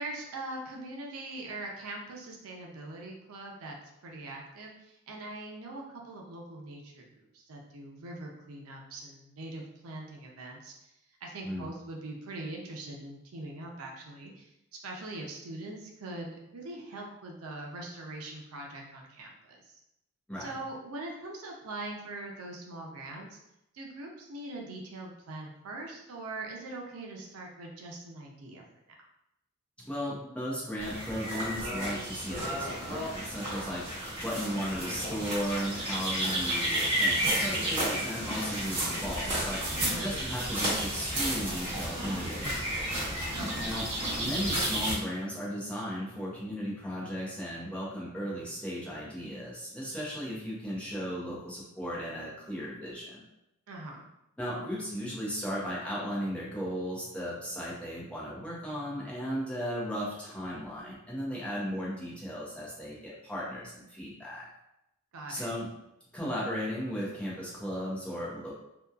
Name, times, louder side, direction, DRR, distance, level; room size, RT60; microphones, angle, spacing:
voice 1, 0.0-3.8 4.0-10.7 11.2-14.5 14.8-19.8 20.4-23.4 23.7-28.7 39.8-40.3 43.3-43.7 53.7-54.1 65.1-65.5, right 2 dB, 85° right, 0 dB, 0.5 m, -42 dB
voice 2, 29.9-33.9 34.2-39.7 40.0-42.8 43.6-43.9 44.2-53.2 54.4-64.5 65.3-65.7 66.1-68.5, equal, 5° left, -6 dB, 0.7 m, -36 dB
sound 1, 30.8-44.9, right 1 dB, 30° right, 1.2 m, -32 dB
2.7 x 2.2 x 2.3 m, 0.86 s
head